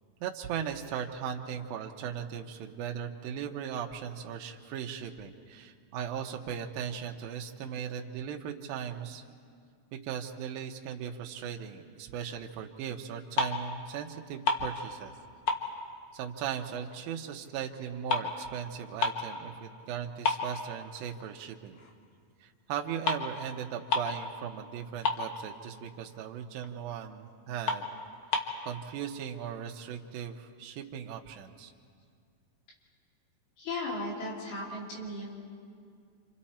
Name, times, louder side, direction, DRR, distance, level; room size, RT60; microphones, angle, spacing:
voice 1, 0.2-9.2 9.9-15.1 16.1-21.8 22.4-27.9 28.6-31.7 33.9-34.1, right 8 dB, 75° right, 2 dB, 2.6 m, -38 dB
sound 1, 13.1-13.8 14.1-15.2 15.5-17.0 17.3-19.4 19.8-19.9 20.2-21.3 21.7-21.9 22.7-22.8 23.0-23.3 23.6-23.7 23.9-24.3 24.6-24.7 24.8-25.7 26.1-26.2 26.6-26.7 27.2-27.3 27.6-28.6, left 4 dB, 55° left, 1.5 m, -31 dB
voice 2, 33.6-35.3, left 2 dB, 85° left, -3 dB, 5.1 m, -36 dB
29.0 x 27.0 x 4.3 m, 2.2 s
omnidirectional pair, 4.3 m